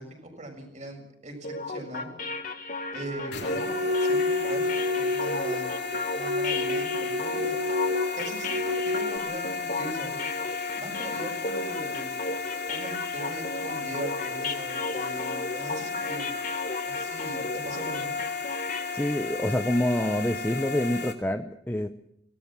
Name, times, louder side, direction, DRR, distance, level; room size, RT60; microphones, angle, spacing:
voice 1, 0.0-2.1 2.9-3.7 4.0-5.7 6.1-7.6 8.1-10.2 10.7-12.2 12.7-16.3 16.8-18.2, right 1 dB, 40° right, 3 dB, 6.7 m, -40 dB
sound 1, 1.4-19.3, left 3 dB, 50° left, 2.1 m, -35 dB
sound 2, 3.3-21.1, left 4 dB, 65° left, 3.0 m, -34 dB
sound 3, 3.4-9.2, left 2 dB, 70° right, 1.1 m, -29 dB
voice 2, 18.9-21.9, left 1 dB, 10° left, 6 dB, 0.9 m, -27 dB
24.5 x 18.5 x 7.5 m, 0.72 s
head